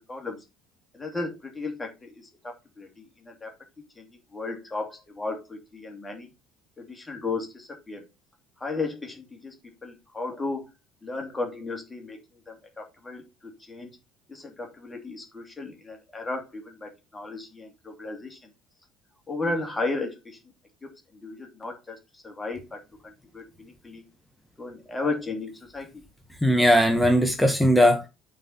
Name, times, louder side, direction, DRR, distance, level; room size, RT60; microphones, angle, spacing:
voice 1, 0.1-0.4 0.9-3.5 4.0-6.3 6.8-8.0 8.6-9.5 9.8-10.6 11.0-12.2 12.5-13.9 14.3-18.4 19.3-20.4 20.8-20.9 21.2-24.0 24.6-26.0, left 3 dB, 20° left, 2.8 m, -35 dB
voice 2, 26.4-28.1, equal, 5° left, 1.5 m, -19 dB
8.8 x 4.3 x 5.5 m
figure-of-eight pair, 60°, 0 cm